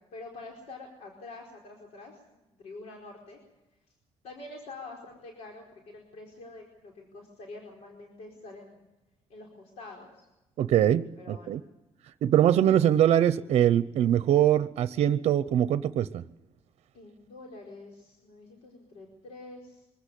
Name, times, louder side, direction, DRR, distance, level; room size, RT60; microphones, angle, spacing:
voice 1, 0.0-3.4 4.2-8.8 9.3-10.3 11.2-11.6 16.9-19.9, left 2 dB, 85° left, 1 dB, 4.7 m, -46 dB
voice 2, 10.6-11.6 12.2-16.2, right 10 dB, 75° right, 14 dB, 0.8 m, -23 dB
24.5 x 16.5 x 8.4 m, 0.96 s
cardioid pair, 145°, 11 cm